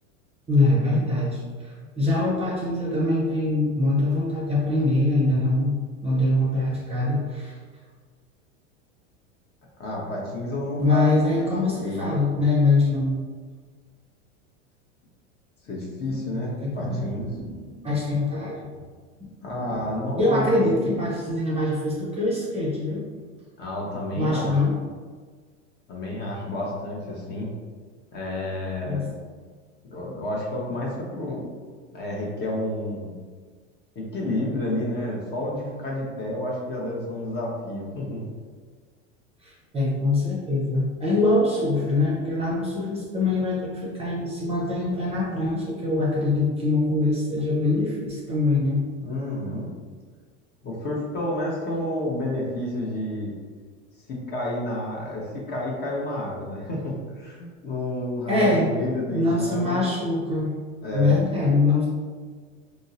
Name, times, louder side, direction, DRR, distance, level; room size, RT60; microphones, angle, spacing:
voice 1, 0.5-5.8 6.0-7.6 10.8-13.2 16.1-16.2 16.6-17.0 17.3-18.7 19.4-19.9 20.2-23.0 24.2-24.7 28.9-29.0 39.4-48.8 58.3-58.7 59.0-60.5 60.9-61.9, left 2 dB, 15° right, -4 dB, 0.6 m, -23 dB
voice 2, 9.8-12.1 15.6-17.3 19.4-20.9 23.6-24.6 25.9-27.5 28.1-29.1 29.9-31.5 31.9-33.1 33.9-38.3 49.0-49.7 50.6-53.3 54.1-59.8 60.8-61.1, left 1 dB, 30° left, -3 dB, 0.7 m, -30 dB
3.5 x 2.0 x 2.6 m, 1.6 s
supercardioid pair, 115°, 36 cm